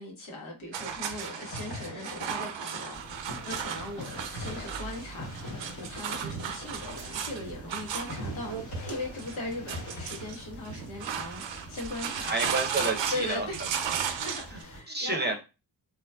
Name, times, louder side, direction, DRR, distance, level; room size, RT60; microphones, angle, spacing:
voice 1, 0.0-12.3 13.1-13.6 14.0-15.3, left 2 dB, 90° left, 1.2 m, -39 dB
sound 1, 0.7-14.6, right 8 dB, 70° right, 0.5 m, -36 dB
sound 2, 1.1-3.0 3.3-11.0, left 2 dB, 50° left, 1.1 m, -43 dB
sound 3, 2.9-14.8, equal, 30° left, 0.8 m, -47 dB
voice 2, 12.2-13.7 14.5-14.6 14.9-15.3, right 2 dB, 20° right, 0.6 m, -30 dB
3.0 x 2.2 x 2.2 m
cardioid pair, 65°, 47 cm